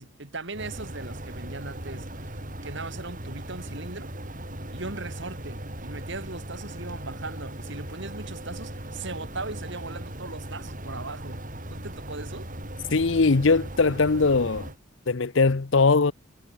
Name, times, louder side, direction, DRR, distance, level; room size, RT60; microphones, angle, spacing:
voice 1, 0.0-4.1 4.7-11.4 11.7-12.5, right 3 dB, 60° right, 3.0 m, -39 dB
sound 1, 0.5-14.8, right 1 dB, 40° right, 7.0 m, -38 dB
voice 2, 12.9-14.7 15.1-16.1, left 4 dB, 60° left, 0.7 m, -21 dB
head